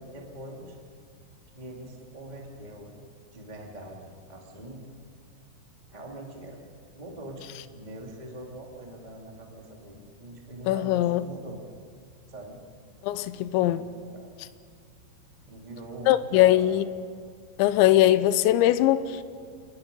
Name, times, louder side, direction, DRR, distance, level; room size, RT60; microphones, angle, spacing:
voice 1, 0.1-0.8 1.5-3.0 3.3-4.9 5.9-6.6 6.9-11.6 12.3-12.6 13.5-14.3 15.4-16.8, right 1 dB, 20° right, -1 dB, 1.1 m, -43 dB
voice 2, 10.7-11.2 13.0-13.9 16.1-16.8 17.6-19.2, left 14 dB, 80° left, 13 dB, 2.8 m, -21 dB
28.5 x 20.5 x 5.3 m, 2.2 s
omnidirectional pair, 5.7 m